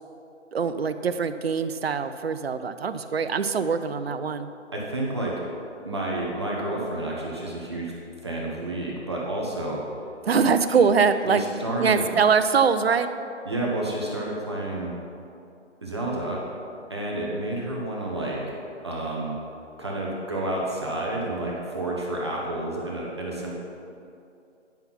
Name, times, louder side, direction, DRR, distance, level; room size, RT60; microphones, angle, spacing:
voice 1, 0.5-4.5 10.3-11.4 11.8-13.1, right 6 dB, 55° right, 10 dB, 0.6 m, -23 dB
voice 2, 4.7-5.4 5.8-7.9 8.2-9.8 11.2-12.1 13.5-14.9 15.8-16.4 16.9-18.5 18.8-19.3 19.8-23.5, right 1 dB, 20° right, -4 dB, 0.8 m, -30 dB
10.5 x 5.7 x 5.8 m, 2.6 s
hypercardioid pair, 170°, 36 cm